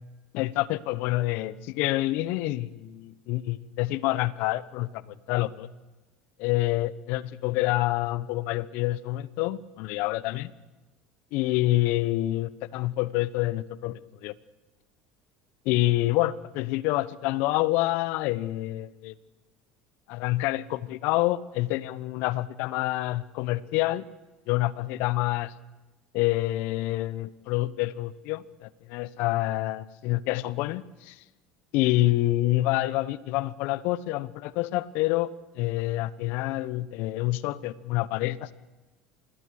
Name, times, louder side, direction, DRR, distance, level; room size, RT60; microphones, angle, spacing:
voice 1, 0.3-5.7 6.4-10.5 11.3-14.3 15.6-19.1 20.1-24.0 24.5-25.5 26.1-31.2 31.7-35.3 35.6-38.5, left 17 dB, 65° left, 18 dB, 1.0 m, -27 dB
26.5 x 20.5 x 6.6 m, 1.1 s
hypercardioid pair, 80°, 3 cm